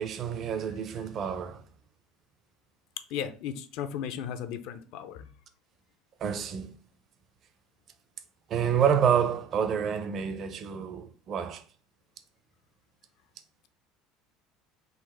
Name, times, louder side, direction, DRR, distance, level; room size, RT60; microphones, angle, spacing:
voice 1, 0.0-1.6 6.2-6.7 8.5-11.6, right 8 dB, 40° right, 0.6 m, -28 dB
voice 2, 3.1-5.3, left 9 dB, 65° left, 0.5 m, -35 dB
4.0 x 2.6 x 4.2 m
cardioid pair, 135°, 0 cm